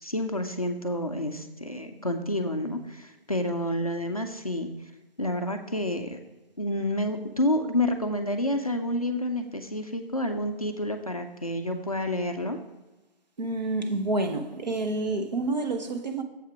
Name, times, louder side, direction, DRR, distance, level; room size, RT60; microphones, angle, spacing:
voice 1, 0.0-4.7 5.2-6.2 6.6-12.6, left 1 dB, 40° left, 4 dB, 0.4 m, -29 dB
voice 2, 13.4-16.2, right 2 dB, 45° right, 5 dB, 0.8 m, -28 dB
7.4 x 5.5 x 4.9 m, 1.1 s
hypercardioid pair, 175°, 30 cm